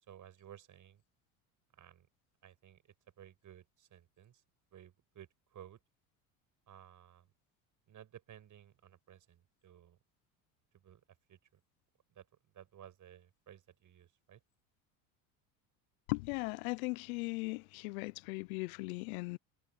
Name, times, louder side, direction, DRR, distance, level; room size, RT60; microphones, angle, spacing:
voice 1, 0.1-1.0 1.7-2.1 2.4-2.8 3.2-4.4 4.7-5.8 6.7-7.3 7.9-10.0 10.7-11.0 11.3-11.6 12.1-14.4, right 10 dB, 45° right, 7.9 m, -56 dB
voice 2, 16.1-19.4, left 26 dB, 75° left, 0.6 m, -38 dB
supercardioid pair, 90°, 42 cm